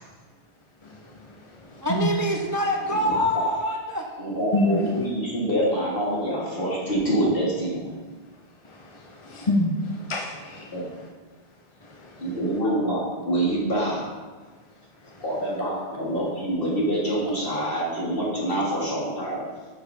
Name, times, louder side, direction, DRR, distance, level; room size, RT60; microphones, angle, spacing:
voice 1, 0.8-2.1 4.5-4.8 8.6-11.1 11.8-12.4 15.0-15.2, left 1 dB, 30° left, -1 dB, 0.9 m, -29 dB
voice 2, 1.8-4.0, equal, 20° right, 1 dB, 0.7 m, -25 dB
voice 3, 4.2-7.9 10.7-10.9 12.2-14.0 15.2-19.4, right 1 dB, 55° left, -6 dB, 3.4 m, -26 dB
9.8 x 6.9 x 5.3 m, 1.3 s
omnidirectional pair, 1.1 m